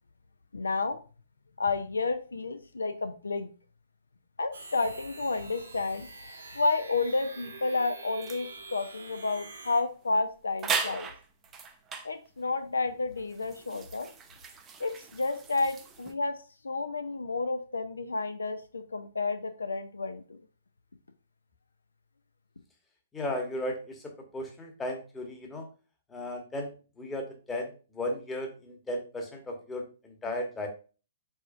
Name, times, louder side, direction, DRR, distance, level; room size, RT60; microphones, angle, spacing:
voice 1, 0.5-1.0 1.6-3.5 4.4-6.1 6.5-11.1 12.0-14.1 14.8-16.4 16.6-20.4, left 3 dB, 70° left, 9 dB, 0.5 m, -31 dB
sound 1, 4.5-9.8, right 3 dB, 60° right, 1.0 m, -46 dB
first aid stuff, 8.2-8.5 9.6-9.8 10.0-10.1 10.6-12.1 12.9-16.1, right 5 dB, 15° right, 0.6 m, -37 dB
voice 2, 23.1-25.7 26.1-30.7, left 1 dB, 10° left, 2 dB, 1.0 m, -35 dB
4.7 x 4.2 x 2.4 m, 0.35 s
figure-of-eight pair, 120°, 0 cm